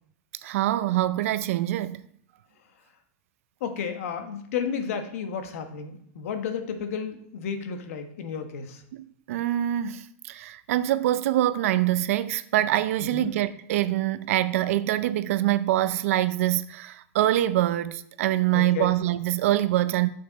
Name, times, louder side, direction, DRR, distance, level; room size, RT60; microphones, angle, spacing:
voice 1, 0.4-2.0 8.9-20.1, right 14 dB, 75° right, 0.5 m, -25 dB
voice 2, 3.6-8.8 13.1-13.3 18.5-18.9, left 6 dB, 80° left, 1.2 m, -32 dB
6.8 x 6.4 x 4.0 m
supercardioid pair, 165°, 8 cm